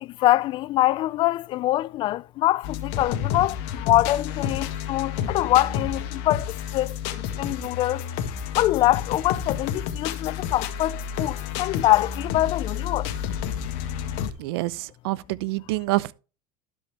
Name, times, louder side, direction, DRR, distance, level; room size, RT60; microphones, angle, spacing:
voice 1, 0.0-8.0 8.6-13.1, left 15 dB, 40° left, 0.3 m, -24 dB
sound 1, 2.6-14.3, left 8 dB, 60° left, 1.5 m, -30 dB
voice 2, 14.4-16.1, right 18 dB, 75° right, 0.7 m, -27 dB
12.5 x 5.3 x 3.3 m
supercardioid pair, 120°, 13 cm